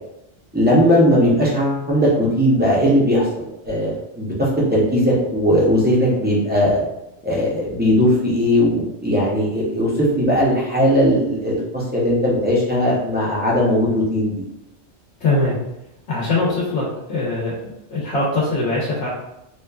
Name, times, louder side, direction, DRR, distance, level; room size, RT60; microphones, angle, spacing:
voice 1, 0.5-3.2 3.6-4.3 4.7-6.8 7.2-14.4, equal, 15° right, -7 dB, 0.4 m, -18 dB
voice 2, 15.2-15.6 16.1-17.6 17.9-19.1, left 2 dB, 85° left, -5 dB, 1.0 m, -21 dB
2.9 x 2.2 x 2.3 m, 0.86 s
omnidirectional pair, 1.2 m